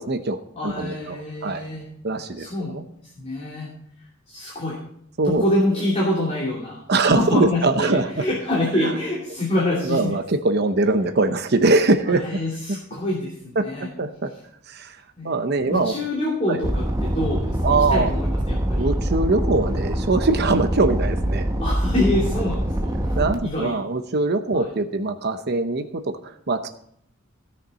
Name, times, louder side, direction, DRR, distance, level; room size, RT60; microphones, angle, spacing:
voice 1, 0.0-1.7 2.0-2.8 5.2-5.4 6.9-8.2 8.8-9.0 9.8-12.4 13.6-14.3 14.7-15.0 15.2-16.0 16.5-16.6 17.6-18.1 18.7-21.5 23.1-26.7, right 3 dB, 55° right, 8 dB, 0.8 m, -22 dB
voice 2, 0.5-1.9 2.4-3.7 4.3-4.8 5.2-10.1 12.1-13.9 15.2-15.3 15.7-18.8 21.6-23.7 24.5-24.7, left 1 dB, 35° left, -5 dB, 2.7 m, -26 dB
sound 1, 16.6-23.4, equal, 20° right, 1.0 m, -24 dB
16.5 x 6.7 x 4.2 m, 0.69 s
head